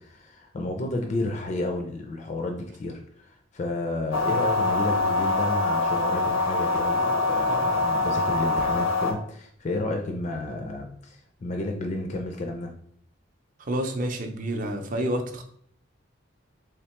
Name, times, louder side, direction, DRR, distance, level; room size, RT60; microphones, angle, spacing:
voice 1, 0.0-12.7, left 2 dB, 35° left, 3 dB, 0.4 m, -31 dB
sound 1, 4.1-9.1, left 2 dB, 85° left, 0.6 m, -24 dB
voice 2, 13.6-15.4, right 1 dB, 40° right, 5 dB, 0.5 m, -29 dB
3.5 x 3.2 x 2.9 m, 0.64 s
head